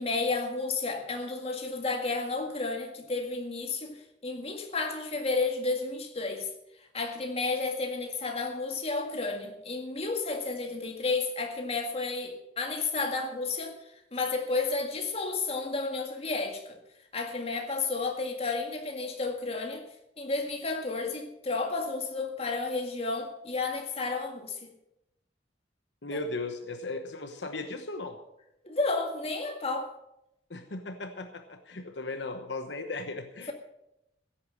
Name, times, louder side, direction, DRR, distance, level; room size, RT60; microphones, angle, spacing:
voice 1, 0.0-4.0 4.2-6.5 6.9-13.8 14.1-16.8 17.1-19.8 20.2-24.7 26.1-26.3 28.6-29.9, left 3 dB, 30° left, 3 dB, 2.0 m, -32 dB
voice 2, 26.0-28.2 30.5-33.5, left 2 dB, 70° left, 7 dB, 1.1 m, -37 dB
16.0 x 8.6 x 6.5 m, 0.86 s
head